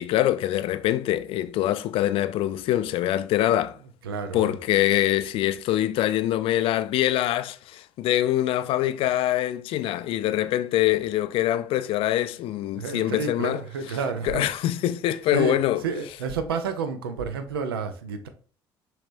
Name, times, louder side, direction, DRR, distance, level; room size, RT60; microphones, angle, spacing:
voice 1, 0.0-3.8 4.3-13.6 14.2-15.8, left 13 dB, 45° left, 0.3 m, -24 dB
voice 2, 4.0-4.5 12.7-14.5 15.3-15.6 15.8-18.3, right 5 dB, 75° right, 0.5 m, -30 dB
5.8 x 3.1 x 2.5 m
figure-of-eight pair, 55°, 13 cm